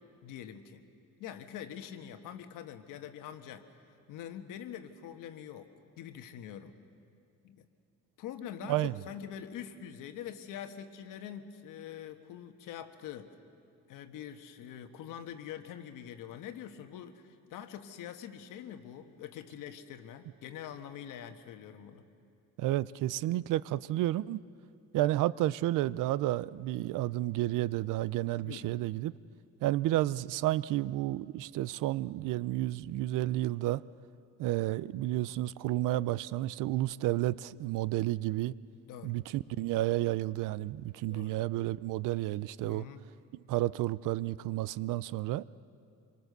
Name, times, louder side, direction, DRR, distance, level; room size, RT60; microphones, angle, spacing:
voice 1, 0.2-0.8 1.2-3.7 4.1-5.7 6.0-6.8 7.4-7.7 8.2-13.3 13.9-22.0 28.4-28.7 38.9-39.1 41.1-41.4 42.6-43.1, left 9 dB, 90° left, 1.4 m, -44 dB
voice 2, 22.6-24.4 24.9-29.1 29.6-33.8 34.4-38.5 39.0-42.8 43.5-45.4, right 15 dB, 80° right, 0.5 m, -31 dB
26.0 x 23.5 x 6.7 m
cardioid pair, 155°, 31 cm